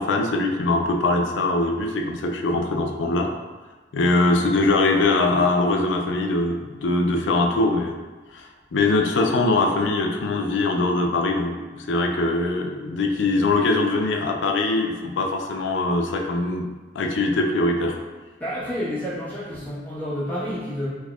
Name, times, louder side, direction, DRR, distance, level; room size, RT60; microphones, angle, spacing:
voice 1, 0.0-3.3 3.9-8.0 8.3-16.7 17.0-18.0, left 2 dB, 75° left, 2 dB, 0.4 m, -22 dB
voice 2, 18.4-20.9, equal, 10° left, -11 dB, 1.2 m, -29 dB
4.4 x 2.7 x 2.3 m, 1.2 s
head